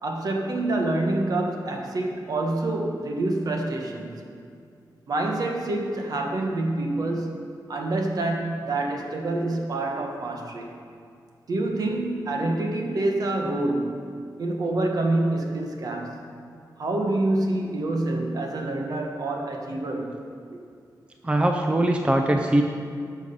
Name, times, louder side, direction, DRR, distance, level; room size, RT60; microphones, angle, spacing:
voice 1, 0.0-4.1 5.1-10.7 11.5-13.9 14.4-16.2 16.8-20.2 20.5-20.6, right 2 dB, 55° right, 2 dB, 1.3 m, -27 dB
voice 2, 21.2-22.6, right 1 dB, 15° right, 3 dB, 0.5 m, -21 dB
12.0 x 6.4 x 5.4 m, 2.3 s
wide cardioid pair, 175°, 8 cm